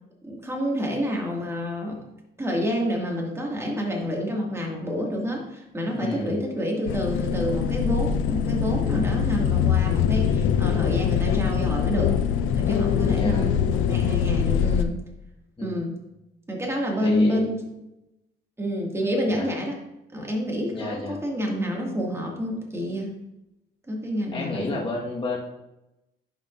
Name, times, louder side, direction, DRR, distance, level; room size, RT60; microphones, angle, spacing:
voice 1, 0.2-2.0 2.4-12.1 12.5-15.0 15.6-16.0 16.5-17.6 18.6-19.8 20.1-23.1 23.9-24.9, equal, 15° right, -1 dB, 2.2 m, -28 dB
voice 2, 5.9-6.4 13.1-13.6 15.6-15.8 17.0-17.4 19.3-19.5 20.7-21.2 24.3-25.4, left 3 dB, 25° left, -4 dB, 1.6 m, -31 dB
sound 1, 6.9-14.8, left 8 dB, 85° left, 0.5 m, -23 dB
11.0 x 5.2 x 2.6 m, 0.90 s
cardioid pair, 90°, 20 cm